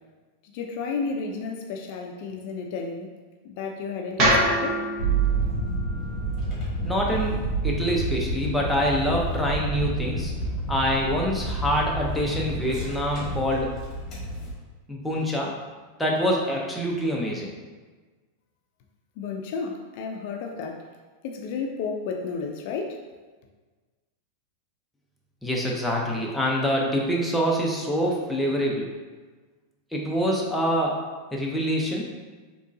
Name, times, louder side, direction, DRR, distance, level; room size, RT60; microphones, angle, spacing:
voice 1, 0.4-3.1 3.4-4.8 19.2-20.9 21.2-23.1, left 4 dB, 60° left, 2 dB, 0.4 m, -32 dB
sound 1, 4.2-8.4, equal, 40° right, 1.0 m, -27 dB
sound 2, 5.0-14.5, right 3 dB, 25° left, 1.4 m, -29 dB
voice 2, 6.8-10.3 10.7-13.8 14.9-15.5 16.0-17.5 25.4-28.9 29.9-31.0 31.3-32.2, equal, 5° left, -3 dB, 0.6 m, -25 dB
3.6 x 3.0 x 2.6 m, 1.4 s
hypercardioid pair, 120°, 0 cm